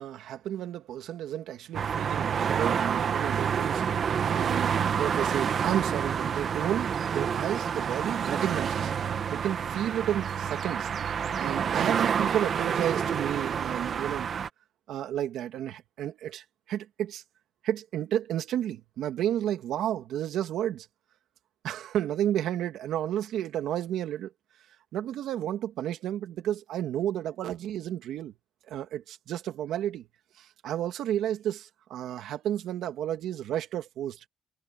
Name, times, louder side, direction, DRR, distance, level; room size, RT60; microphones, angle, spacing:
voice 1, 0.0-4.0 4.3-8.9 9.3-10.9 11.4-14.3 14.9-17.2 17.6-20.9 21.6-24.3 24.9-28.3 28.7-30.1 30.4-34.2, right 11 dB, 80° right, 2.2 m, -32 dB
sound 1, 1.7-14.5, right 7 dB, 55° right, 1.7 m, -28 dB
cardioid pair, 90°, 0 cm